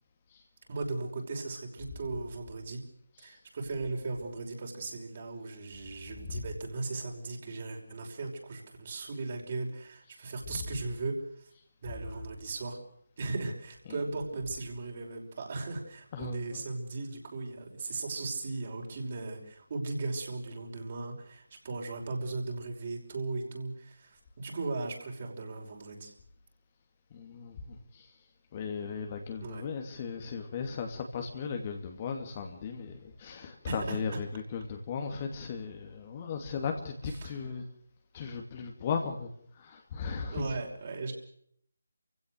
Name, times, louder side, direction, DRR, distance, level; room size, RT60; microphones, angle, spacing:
voice 1, 0.7-2.8 3.2-11.5 11.8-12.8 13.2-26.1 29.4-29.6 33.7-34.0 37.2-37.3 40.3-41.1, right 3 dB, 40° right, 1 dB, 5.7 m, -37 dB
voice 2, 10.5-10.8 11.9-12.2 13.8-14.1 16.1-16.7 27.1-28.1 28.5-37.7 38.1-40.5, left 5 dB, 25° left, 4 dB, 2.5 m, -37 dB
28.0 x 16.5 x 6.6 m, 0.67 s
figure-of-eight pair, 155°, 0 cm